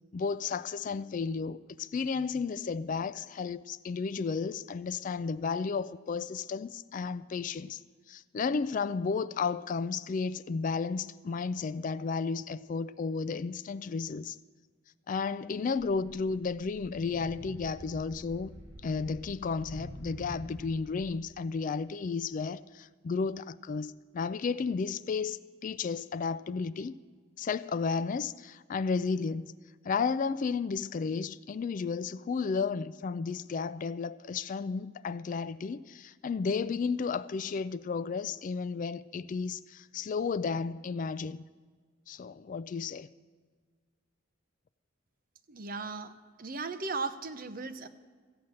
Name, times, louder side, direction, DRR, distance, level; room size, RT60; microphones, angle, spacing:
voice 1, 0.1-7.8 8.1-14.4 15.1-18.5 18.8-27.0 27.4-29.5 29.8-41.4 42.1-43.1, left 5 dB, 40° left, 0.3 m, -33 dB
sound 1, 15.8-21.1, equal, 15° right, 3.9 m, -47 dB
voice 2, 45.5-46.1 46.4-47.9, right 4 dB, 45° right, 0.8 m, -36 dB
14.5 x 8.8 x 7.6 m
head